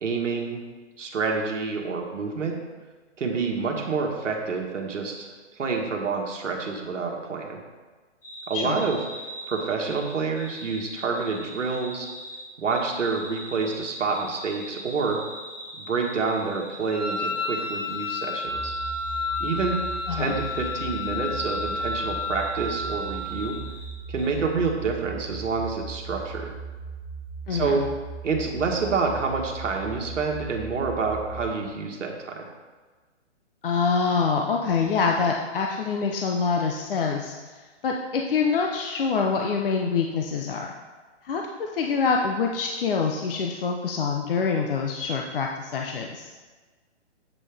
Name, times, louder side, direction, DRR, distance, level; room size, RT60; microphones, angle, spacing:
voice 1, 0.0-0.6 1.0-2.6 3.2-7.6 8.5-9.0 9.5-12.1 12.6-15.2 15.8-18.7 19.4-19.8 20.1-23.6 24.1-26.5 27.5-27.9 28.2-32.5, right 4 dB, 90° right, 1 dB, 1.5 m, -28 dB
sound 1, 8.2-23.9 24.2-24.3, equal, 20° left, 2.1 m, -42 dB
Wind instrument woodwind instrument, 16.9-23.5, left 3 dB, 5° left, 0.7 m, -31 dB
sound 2, 18.5-31.5, right 5 dB, 80° left, 1.4 m, -38 dB
voice 2, 33.6-37.4 37.8-40.7 41.2-46.3, left 5 dB, 50° left, 1 dB, 0.6 m, -25 dB
8.3 x 5.5 x 3.4 m, 1.3 s
hypercardioid pair, 155°, 36 cm